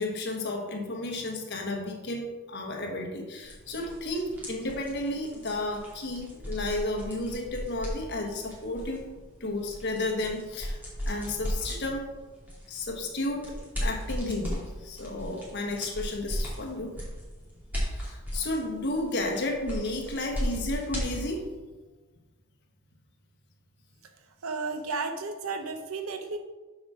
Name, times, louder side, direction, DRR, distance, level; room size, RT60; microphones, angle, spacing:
voice 1, 0.0-9.1 9.4-10.8 11.0-12.1 12.7-17.0 17.8-21.4, left 2 dB, 50° left, 1 dB, 1.4 m, -32 dB
sound 1, 3.4-21.5, equal, 10° right, 2.7 m, -37 dB
voice 2, 24.2-26.4, right 4 dB, 70° right, 6 dB, 0.6 m, -33 dB
7.2 x 4.9 x 6.2 m, 1.3 s
head